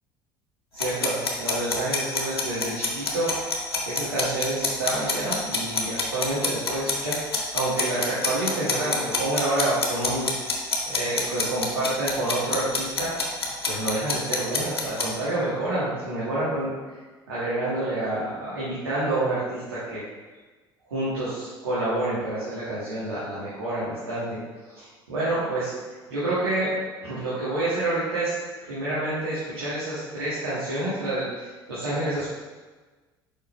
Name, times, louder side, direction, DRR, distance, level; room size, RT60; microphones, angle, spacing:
voice 1, 0.7-3.5 3.9-10.3 10.9-13.1 13.6-16.7 17.3-20.0 20.9-24.4 24.6-25.7 26.1-26.7 27.0-28.3 28.6-32.3, right 2 dB, 80° right, -11 dB, 1.9 m, -28 dB
sound 1, 0.8-15.1, left 4 dB, 85° left, 0.9 m, -26 dB
6.8 x 5.4 x 3.2 m, 1.3 s
figure-of-eight pair, 60°, 13 cm